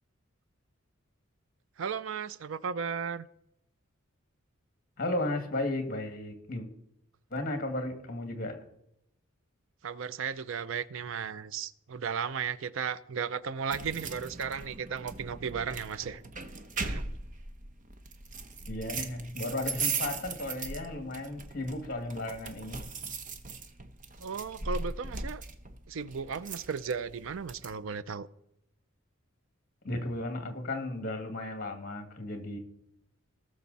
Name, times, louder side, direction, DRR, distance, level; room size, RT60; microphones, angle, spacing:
voice 1, 1.8-3.3 9.8-16.2 16.8-17.0 24.2-25.4 25.9-28.3, right 6 dB, 65° right, 0.5 m, -35 dB
voice 2, 5.0-6.7 7.3-8.6 18.7-22.9 29.8-32.6, left 1 dB, 45° left, 2.0 m, -34 dB
sound 1, 13.7-27.7, right 4 dB, 40° right, 0.9 m, -39 dB
19.0 x 6.4 x 4.1 m
head